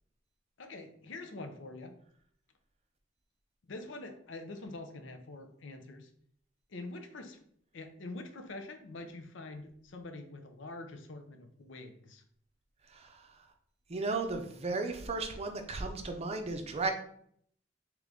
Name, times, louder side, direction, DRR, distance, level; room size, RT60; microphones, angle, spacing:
voice 1, 0.6-2.0 3.6-6.1 6.7-7.4 7.7-12.2, left 2 dB, 80° left, 7 dB, 0.6 m, -45 dB
voice 2, 12.9-13.5 13.9-16.9, right 3 dB, 35° right, 5 dB, 0.5 m, -35 dB
3.7 x 3.0 x 3.5 m, 0.65 s
head